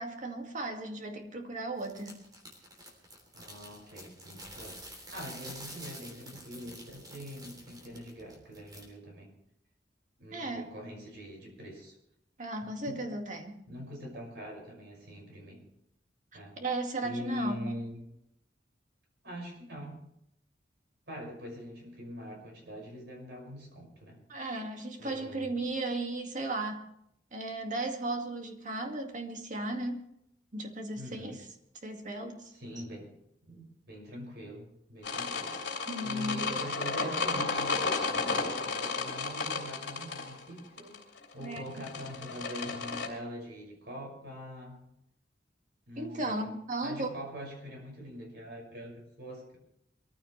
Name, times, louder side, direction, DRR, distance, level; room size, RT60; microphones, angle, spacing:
voice 1, 0.0-2.2 10.3-10.7 12.4-13.6 16.6-17.7 24.3-26.8 27.3-30.1 30.5-31.4 31.8-32.5 35.9-36.4 41.4-41.8 46.0-47.1, right 2 dB, 45° right, 3 dB, 2.1 m, -35 dB
sound 1, 1.8-8.8, right 1 dB, 20° right, 3.3 m, -48 dB
voice 2, 3.3-9.3 10.2-12.0 12.6-13.1 13.7-15.7 16.3-16.6 17.0-18.0 19.2-20.0 21.1-24.2 25.0-25.5 30.9-31.4 32.5-33.1 33.4-35.6 36.0-37.8 38.1-44.8 45.9-46.6 46.8-49.6, equal, 65° right, 1 dB, 6.0 m, -43 dB
sound 2, 35.0-43.1, left 4 dB, 70° left, 2.8 m, -33 dB
22.5 x 15.0 x 3.3 m, 0.76 s
head